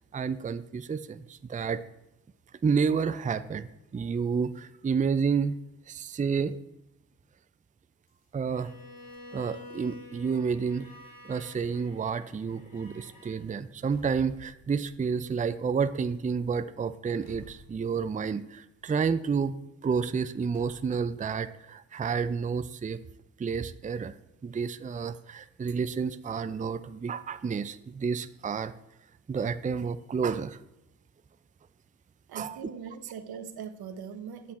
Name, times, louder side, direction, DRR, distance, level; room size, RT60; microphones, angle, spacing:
voice 1, 0.1-1.8 2.6-5.6 5.9-6.6 8.3-8.7 9.3-10.9 11.2-19.6 19.8-23.0 23.4-24.1 24.4-28.7 29.3-30.6 32.3-32.6, right 5 dB, 20° right, 13 dB, 0.5 m, -30 dB
sound 1, 8.1-10.0 10.4-11.2 11.9-12.0 12.5-12.8 13.4-15.3 15.8-16.3 17.1-18.3 18.8-19.4 20.3-21.1, left 3 dB, 85° left, 2.1 m, -55 dB
Bowed string instrument, 8.5-13.4, left 2 dB, 60° left, 3.4 m, -49 dB
voice 2, 32.3-34.5, right 7 dB, 75° right, 10 dB, 0.9 m, -40 dB
8.4 x 7.8 x 4.3 m, 0.91 s
supercardioid pair, 45°, 37 cm